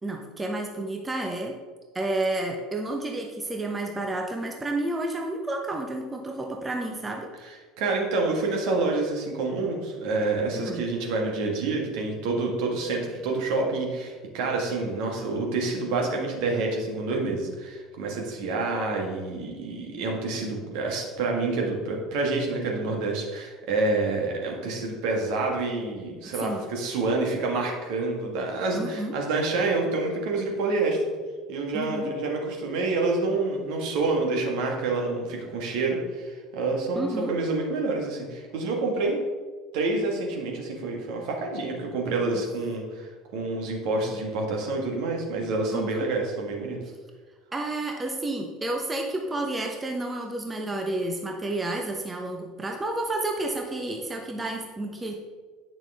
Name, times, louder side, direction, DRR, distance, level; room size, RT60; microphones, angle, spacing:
voice 1, 0.0-1.6 1.9-7.3 10.5-10.8 26.3-26.6 28.7-29.1 31.7-32.1 36.9-37.4 45.7-46.1 47.5-55.2, right 2 dB, 20° right, 2 dB, 0.9 m, -30 dB
voice 2, 7.8-31.0 31.5-39.2 39.7-46.8, right 3 dB, 60° right, 0 dB, 1.7 m, -28 dB
9.0 x 6.1 x 3.5 m, 1.4 s
figure-of-eight pair, 70°, 0 cm